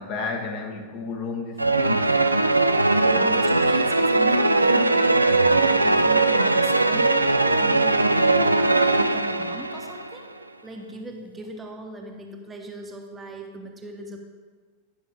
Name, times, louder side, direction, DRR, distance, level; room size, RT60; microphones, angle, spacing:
voice 1, 0.0-2.2 3.1-3.4, left 4 dB, 40° left, 2 dB, 1.3 m, -32 dB
sound 1, 1.6-10.1, right 2 dB, 85° right, 0.4 m, -20 dB
voice 2, 3.0-8.7 9.0-10.2 10.6-14.2, right 1 dB, 15° right, 2 dB, 0.9 m, -39 dB
10.0 x 5.5 x 4.7 m, 1.5 s
figure-of-eight pair, 90°, 0 cm